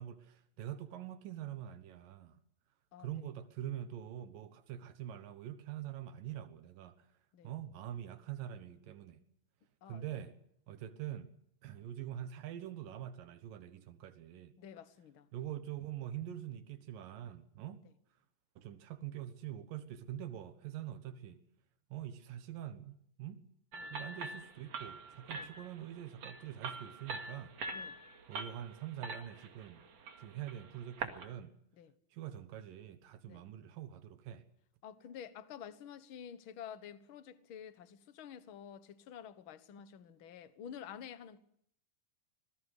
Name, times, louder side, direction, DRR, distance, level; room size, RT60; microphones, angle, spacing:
voice 1, 0.0-2.4 3.0-7.1 7.4-9.2 9.9-10.4 10.7-11.3 11.6-14.5 15.3-17.8 18.6-21.4 21.9-23.4 23.9-27.6 28.3-29.8 30.2-31.5 32.1-34.4, right 11 dB, 90° right, 3.0 m, -44 dB
voice 2, 2.9-3.3 7.3-7.5 9.8-10.3 14.6-15.3 23.7-23.9 25.3-25.5 27.7-28.0 31.7-31.9 33.3-33.5 34.8-41.4, left 8 dB, 55° left, 1.6 m, -50 dB
sound 1, 23.7-31.2, right 3 dB, 50° right, 3.0 m, -44 dB
26.0 x 20.0 x 8.1 m
omnidirectional pair, 3.8 m